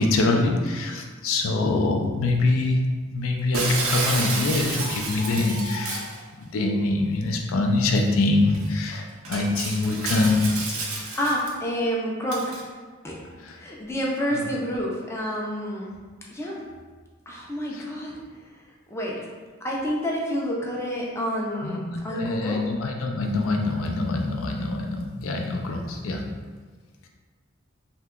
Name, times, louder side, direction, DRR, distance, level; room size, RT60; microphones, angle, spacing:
voice 1, 0.0-2.8 3.1-10.8 21.6-26.2, left 2 dB, 75° left, 2 dB, 0.4 m, -24 dB
Shatter, 3.5-6.2 8.0-8.1 8.5-8.7 9.2-11.5 12.3-12.6, right 3 dB, 90° right, 0.5 m, -30 dB
voice 2, 10.7-12.6 13.0-13.2 13.6-15.9 16.3-16.6 17.3-18.6 18.9-19.3 19.6-22.7, equal, 15° left, -3 dB, 0.4 m, -29 dB
2.8 x 2.2 x 3.6 m, 1.5 s
head